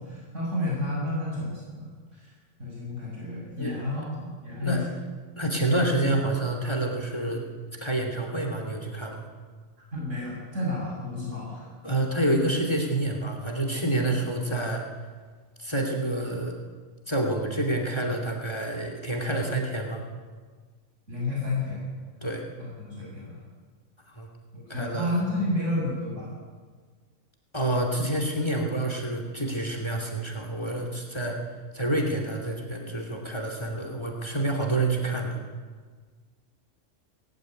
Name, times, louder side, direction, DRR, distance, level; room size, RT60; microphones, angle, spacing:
voice 1, 0.0-2.3 2.6-4.8 9.9-11.7 21.1-21.8 22.6-23.4 24.7-26.3, left 2 dB, 70° right, -5 dB, 7.8 m, -31 dB
voice 2, 5.4-7.4 7.8-9.2 11.8-14.8 15.6-16.6 17.1-20.0 22.2-22.4 24.1-24.3 24.7-25.1 27.5-31.4 31.7-35.4, right 1 dB, 20° left, 3 dB, 2.8 m, -28 dB
19.0 x 15.0 x 9.8 m, 1.5 s
omnidirectional pair, 1.4 m